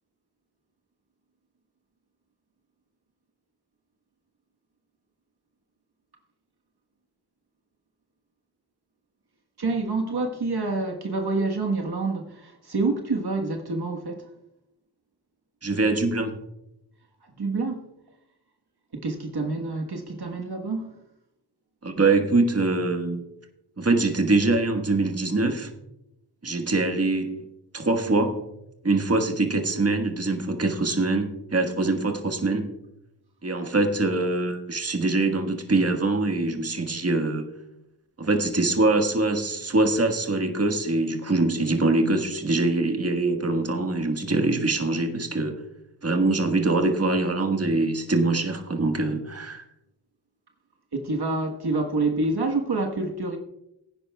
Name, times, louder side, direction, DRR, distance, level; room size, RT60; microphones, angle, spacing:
voice 1, 9.6-14.3 17.3-17.9 18.9-20.9 50.9-53.4, right 3 dB, 60° right, 3 dB, 1.4 m, -27 dB
voice 2, 15.6-16.4 21.8-23.2 23.8-25.7 26.4-27.5 27.7-28.5 28.8-32.7 33.4-37.4 38.2-45.6 46.0-49.6, right 2 dB, 35° right, 4 dB, 1.5 m, -23 dB
17.0 x 9.9 x 2.3 m, 0.86 s
cardioid pair, 40°, 44 cm